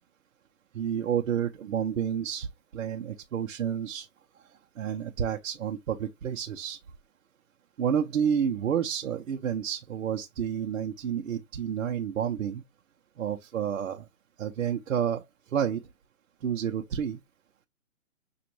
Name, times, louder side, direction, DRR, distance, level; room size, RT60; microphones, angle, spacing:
voice 1, 0.7-4.1 4.8-6.8 7.8-12.6 13.2-14.1 14.4-15.2 15.5-15.8 16.4-17.2, right 8 dB, 70° right, 0.7 m, -30 dB
6.1 x 2.5 x 2.9 m
hypercardioid pair, 165°, 41 cm